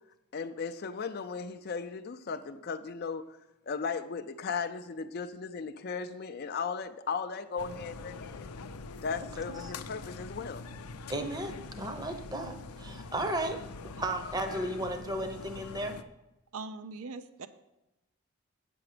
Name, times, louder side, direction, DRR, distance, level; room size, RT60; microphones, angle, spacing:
voice 1, 0.3-3.3 3.7-8.5 9.0-10.6, left 5 dB, 45° left, 0.4 m, -36 dB
sound 1, 7.6-16.0, left 4 dB, 90° left, 0.5 m, -44 dB
voice 2, 11.1-13.6 14.0-16.0, right 1 dB, 20° right, 0.8 m, -34 dB
voice 3, 16.5-17.5, right 3 dB, 75° right, 0.5 m, -41 dB
8.6 x 6.9 x 5.0 m
head